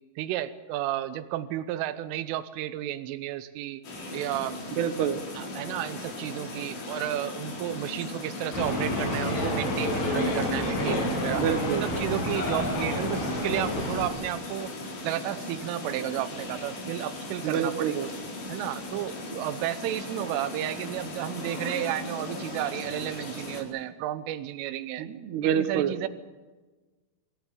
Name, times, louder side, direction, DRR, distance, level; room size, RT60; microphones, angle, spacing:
voice 1, 0.2-3.8 4.1-4.6 5.4-11.4 11.8-14.7 15.0-18.0 18.5-25.1 25.4-26.1, right 13 dB, 90° right, 10 dB, 3.4 m, -32 dB
sound 1, 3.8-23.6, left 2 dB, 60° left, 6.5 m, -38 dB
voice 2, 4.8-5.2 11.3-11.8 17.4-18.1 25.0-25.9, right 9 dB, 65° right, 7 dB, 3.0 m, -27 dB
sound 2, 8.5-14.1, left 1 dB, 80° left, 8.9 m, -29 dB
25.5 x 15.5 x 9.1 m, 1.3 s
omnidirectional pair, 5.6 m